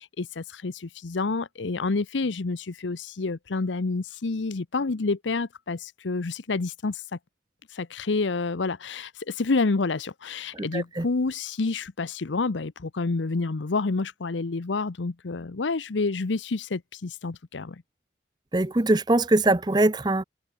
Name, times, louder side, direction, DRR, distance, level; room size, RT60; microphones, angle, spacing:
voice 1, 0.0-7.2 7.7-17.8, left 3 dB, 85° left, 0.8 m, -28 dB
voice 2, 10.5-11.1 18.5-20.2, right 2 dB, 25° right, 0.7 m, -22 dB
head